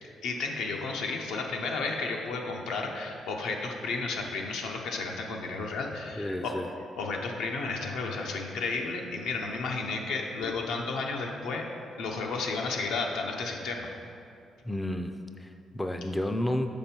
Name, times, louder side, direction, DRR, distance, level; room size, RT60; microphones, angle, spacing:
voice 1, 0.0-6.5 7.0-11.7 12.0-13.9, left 3 dB, 85° left, 1 dB, 0.8 m, -32 dB
voice 2, 6.2-6.7 14.6-16.7, left 1 dB, 10° left, 7 dB, 0.4 m, -31 dB
6.8 x 5.3 x 4.4 m, 2.5 s
cardioid pair, 90°, 0 cm